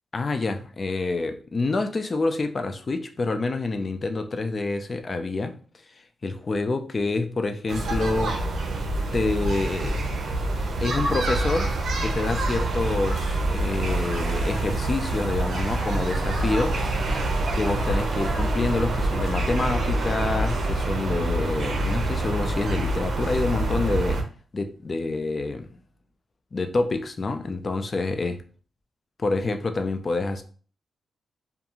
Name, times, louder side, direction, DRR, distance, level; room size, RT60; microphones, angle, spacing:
voice 1, 0.1-5.5 6.2-8.4 9.1-10.0 10.8-11.7 12.0-17.1 17.5-24.2 24.5-25.7 26.5-28.4 29.2-30.4, left 3 dB, 30° left, 0.3 m, -27 dB
sound 1, 7.7-24.2, right 2 dB, 75° right, 0.6 m, -26 dB
sound 2, 13.6-20.7, right 1 dB, 10° right, 0.7 m, -40 dB
2.5 x 2.3 x 2.8 m
wide cardioid pair, 155°, 0 cm